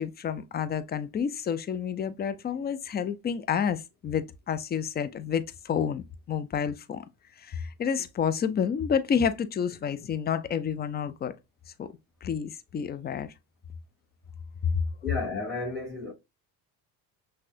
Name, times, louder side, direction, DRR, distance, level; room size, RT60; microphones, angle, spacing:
voice 1, 0.0-7.0 7.4-11.3 11.8-11.9 12.2-13.3 14.6-14.8, left 7 dB, 20° left, 0.4 m, -29 dB
voice 2, 15.0-16.1, left 3 dB, ahead, 2.2 m, -32 dB
5.8 x 2.2 x 2.6 m
hypercardioid pair, 70°, 47 cm